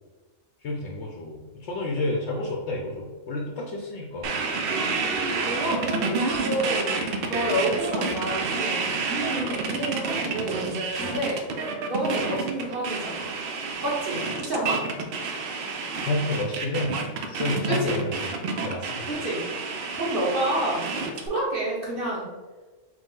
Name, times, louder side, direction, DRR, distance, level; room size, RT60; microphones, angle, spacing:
voice 1, 0.6-4.4 11.0-11.2 16.0-16.9 17.3-19.2, left 2 dB, 65° left, -1 dB, 0.8 m, -30 dB
sound 1, 4.2-21.3, right 4 dB, 65° right, 0.5 m, -29 dB
voice 2, 5.4-6.9 7.3-10.6 10.9-11.4 11.9-13.3 13.8-14.8 17.7-18.0 19.0-19.4 19.9-20.8 21.1-22.3, right 1 dB, 45° right, -6 dB, 1.2 m, -29 dB
4.7 x 2.1 x 3.7 m, 1.3 s
omnidirectional pair, 1.5 m